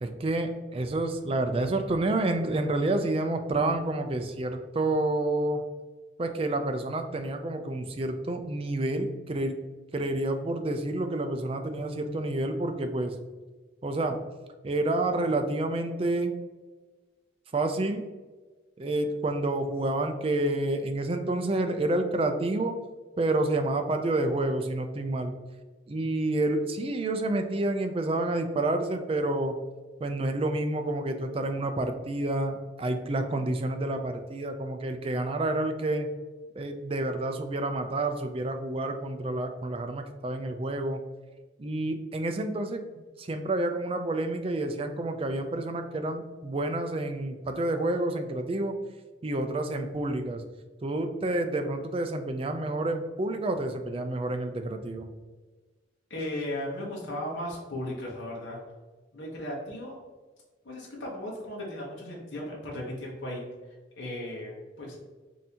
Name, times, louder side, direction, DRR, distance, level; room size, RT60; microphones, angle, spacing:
voice 1, 0.0-5.6 6.2-9.6 9.9-13.1 13.8-14.2 14.6-16.3 17.5-18.0 18.8-22.7 23.2-25.3 25.9-29.6 30.0-36.1 36.5-41.0 41.6-48.8 49.2-50.4 50.8-55.1, right 2 dB, 30° right, 7 dB, 0.4 m, -29 dB
voice 2, 56.1-58.6 59.1-60.0 60.6-63.4 64.0-65.0, left 1 dB, 75° left, -4 dB, 1.0 m, -36 dB
5.4 x 2.7 x 2.8 m, 1.3 s
head